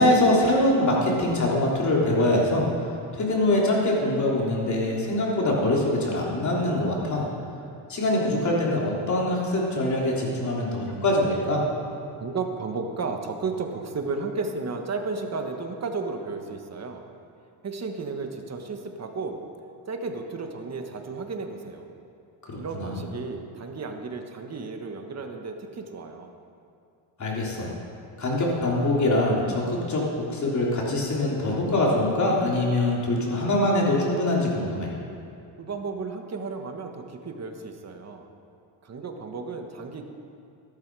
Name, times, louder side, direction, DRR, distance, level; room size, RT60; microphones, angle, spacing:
voice 1, 0.0-7.2 7.9-11.6 22.5-22.9 27.2-27.7 28.2-34.9, left 1 dB, 40° left, -3 dB, 3.4 m, -23 dB
voice 2, 12.2-17.0 17.6-19.4 19.8-21.9 22.6-26.3 35.6-38.2 38.8-40.1, right 4 dB, 35° right, 5 dB, 1.4 m, -33 dB
13.5 x 12.0 x 4.8 m, 2.5 s
cardioid pair, 100°, 46 cm